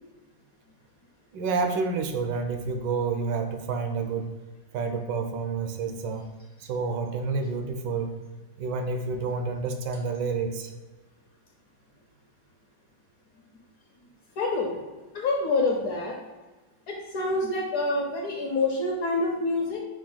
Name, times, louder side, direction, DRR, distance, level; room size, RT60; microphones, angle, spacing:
voice 1, 1.3-4.3 4.7-6.2 6.6-8.1 8.6-10.7, right 4 dB, 80° right, 5 dB, 1.3 m, -29 dB
voice 2, 14.4-14.8 15.1-16.2 16.9-19.8, left 2 dB, 65° left, -1 dB, 1.0 m, -27 dB
5.8 x 2.2 x 3.8 m, 1.2 s
omnidirectional pair, 2.0 m